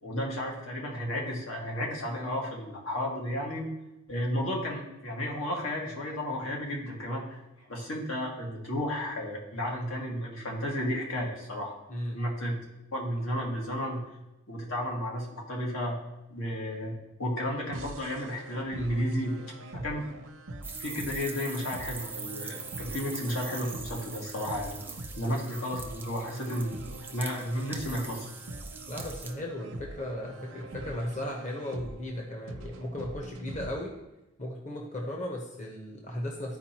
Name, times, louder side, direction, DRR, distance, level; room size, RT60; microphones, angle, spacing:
voice 1, 0.0-3.7 4.1-7.4 7.7-11.7 12.1-12.5 12.9-14.0 14.5-16.0 16.3-19.4 19.7-20.1 20.8-24.8 25.2-26.8 27.1-28.3, equal, 85° left, -2 dB, 1.9 m, -33 dB
voice 2, 11.9-12.2 28.9-33.9 34.4-36.6, left 1 dB, 35° left, 0 dB, 0.9 m, -36 dB
sound 1, 17.7-33.7, right 2 dB, 80° right, 0.6 m, -44 dB
sound 2, 20.6-29.3, right 5 dB, 10° right, 0.5 m, -43 dB
12.0 x 4.6 x 2.9 m, 0.96 s
head